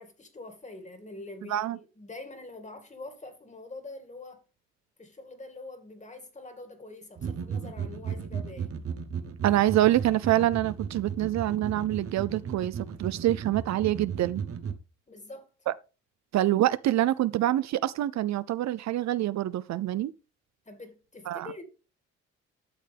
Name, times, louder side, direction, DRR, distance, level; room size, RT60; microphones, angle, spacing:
voice 1, 0.0-4.4 5.0-8.7 15.1-15.5 20.7-21.6, left 2 dB, 25° left, 2.2 m, -45 dB
sound 1, 7.2-14.7, right 7 dB, 50° right, 1.1 m, -35 dB
voice 2, 9.4-14.4 15.7-15.8 16.3-20.1 21.3-21.5, right 14 dB, 65° right, 0.5 m, -26 dB
12.0 x 6.6 x 3.4 m
cardioid pair, 90°, 30 cm